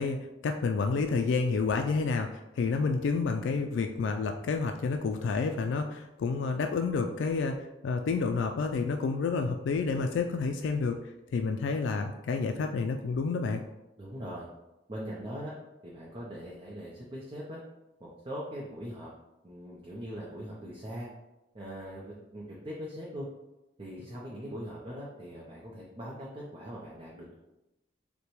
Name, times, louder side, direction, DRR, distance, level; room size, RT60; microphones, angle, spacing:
voice 1, 0.0-11.0 11.3-13.6, left 4 dB, 75° left, 5 dB, 0.3 m, -29 dB
voice 2, 14.0-14.5 14.9-15.5 15.8-17.6 18.0-19.1 19.4-21.1 21.5-23.3 23.8-27.3, equal, 30° right, -5 dB, 0.6 m, -41 dB
6.5 x 2.2 x 3.0 m, 0.96 s
head